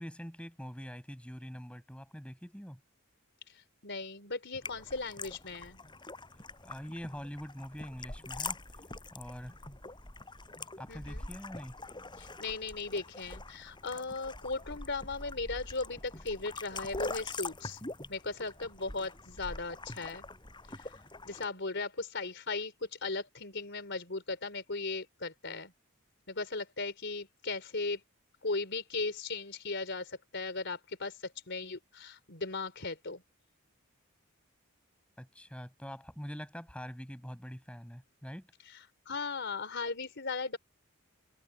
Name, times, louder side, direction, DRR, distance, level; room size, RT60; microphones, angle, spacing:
voice 1, 0.0-2.8 6.6-8.6 9.1-9.5 10.8-11.8 35.2-38.5, equal, 5° left, 6.6 m, -44 dB
voice 2, 3.5-5.8 10.9-11.3 12.2-17.8 18.1-20.2 20.7-21.0 21.2-25.7 26.3-28.0 28.4-33.2 38.7-40.6, left 3 dB, 55° left, 4.3 m, -37 dB
sound 1, 4.6-21.5, left 3 dB, 20° left, 6.5 m, -44 dB
head